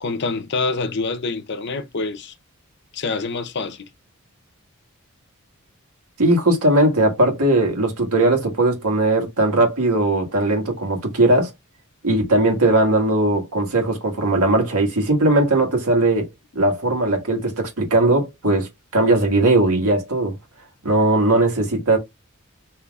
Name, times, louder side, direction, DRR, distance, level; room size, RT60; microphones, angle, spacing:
voice 1, 0.0-2.3 2.9-3.9, left 3 dB, 50° left, 0.6 m, -26 dB
voice 2, 6.2-11.5 12.0-16.3 16.5-20.4 20.8-22.0, right 2 dB, 90° right, 1.5 m, -19 dB
5.5 x 2.9 x 2.3 m
head